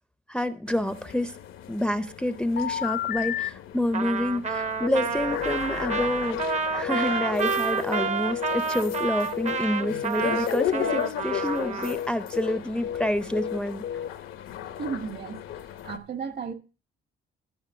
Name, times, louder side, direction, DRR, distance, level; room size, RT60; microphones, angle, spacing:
voice 1, 0.3-1.4 1.7-13.9, left 1 dB, 5° left, 0.5 m, -28 dB
sound 1, 0.7-16.0, left 10 dB, 85° left, 0.9 m, -36 dB
sound 2, 2.6-3.5 4.8-8.6 8.8-9.1 9.3-9.6 9.8-10.1 10.3-10.6 10.8-14.1, left 10 dB, 60° left, 0.6 m, -32 dB
Trumpet, 3.9-11.9, right 5 dB, 35° right, 0.7 m, -29 dB
voice 2, 14.8-15.4 15.8-16.5, right 5 dB, 55° right, 1.4 m, -33 dB
13.0 x 5.2 x 4.9 m
cardioid pair, 90°, 20 cm